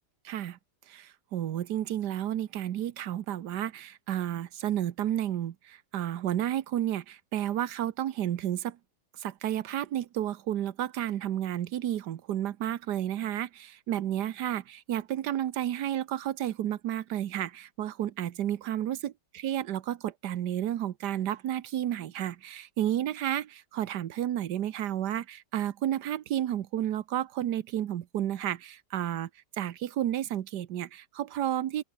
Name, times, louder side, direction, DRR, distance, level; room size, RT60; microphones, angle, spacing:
voice 1, 0.2-0.6 0.9-8.8 9.2-29.3 29.6-31.8, right 11 dB, 85° right, 1.5 m, -31 dB
omnidirectional pair, 1.7 m